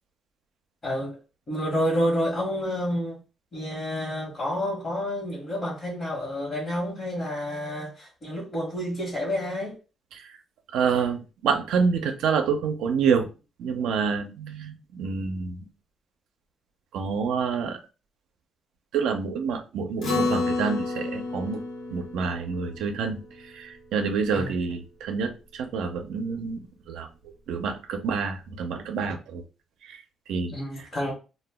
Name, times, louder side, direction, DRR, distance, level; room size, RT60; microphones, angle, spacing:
voice 1, 0.8-1.2 1.5-3.2 3.5-9.8 24.3-24.5 30.4-31.1, equal, 35° left, 1.0 m, -29 dB
voice 2, 10.7-13.3 13.6-15.7 16.9-17.8 18.9-21.6 21.9-26.6 26.9-27.1 27.5-29.4 29.8-30.0 30.3-30.5, right 5 dB, 85° right, 0.4 m, -27 dB
Acoustic guitar, 20.0-24.7, left 3 dB, 85° left, 0.9 m, -31 dB
2.1 x 2.1 x 3.3 m
cardioid pair, 90°, 0 cm